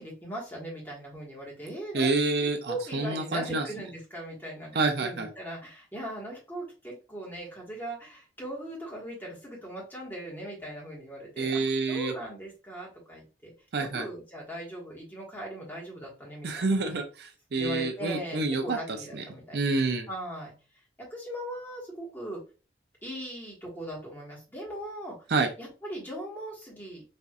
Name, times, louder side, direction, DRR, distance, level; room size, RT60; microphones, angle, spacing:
voice 1, 0.0-2.1 2.4-11.6 11.9-13.5 13.8-17.0 17.6-19.6 20.1-20.5 21.0-22.4 23.0-25.1 25.6-27.0, right 1 dB, 10° left, -4 dB, 1.3 m, -39 dB
voice 2, 1.9-3.6 4.7-5.3 11.4-12.1 13.7-14.1 16.4-19.2 19.5-20.1 25.3-25.5, right 3 dB, 60° right, 5 dB, 0.5 m, -28 dB
4.3 x 2.6 x 2.4 m, 0.34 s
head